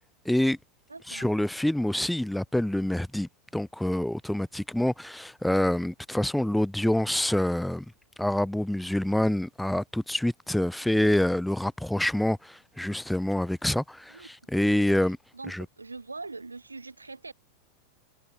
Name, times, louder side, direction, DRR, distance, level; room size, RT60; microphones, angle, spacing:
voice 1, 0.3-0.6 1.1-7.9 8.2-15.2 15.5-15.7, left 1 dB, 5° left, 0.3 m, -26 dB
voice 2, 0.9-1.3 14.1-14.3 15.3-17.3, right 3 dB, 80° right, 0.7 m, -42 dB
figure-of-eight pair, 90°, 0 cm